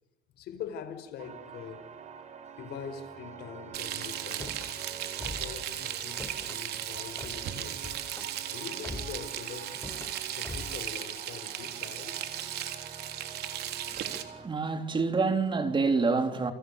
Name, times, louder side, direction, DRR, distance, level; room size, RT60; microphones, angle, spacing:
voice 1, 0.4-1.9 2.6-4.6 5.2-8.2 8.5-9.8 10.3-12.3, left 7 dB, 75° left, 4.8 m, -43 dB
sound 1, 1.2-14.5, right 6 dB, 45° right, 4.7 m, -47 dB
Frying (food), 3.7-14.2, right 11 dB, 75° right, 3.7 m, -37 dB
Car / Slam, 4.2-4.7 5.2-5.6 5.9-6.6 7.2-7.4 7.8-8.3 8.8-9.3 9.7-10.1 10.4-10.8, left 2 dB, 15° left, 4.2 m, -42 dB
voice 2, 13.9-16.5, right 4 dB, 30° right, 3.8 m, -28 dB
29.5 x 29.0 x 6.8 m
cardioid pair, 110°, 17 cm